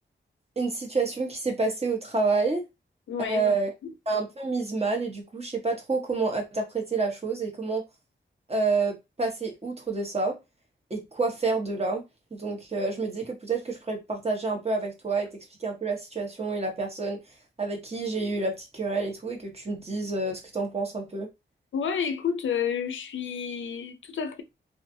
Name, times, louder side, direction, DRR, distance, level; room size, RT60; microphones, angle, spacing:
voice 1, 0.6-2.6 3.3-3.7 4.1-7.8 8.5-10.4 10.9-12.0 12.3-15.3 15.6-17.2 17.6-21.3, right 3 dB, 30° right, 1.0 m, -28 dB
voice 2, 3.1-3.5 21.7-24.4, left 7 dB, 75° left, 0.5 m, -30 dB
2.6 x 2.3 x 2.6 m
cardioid pair, 60°, 20 cm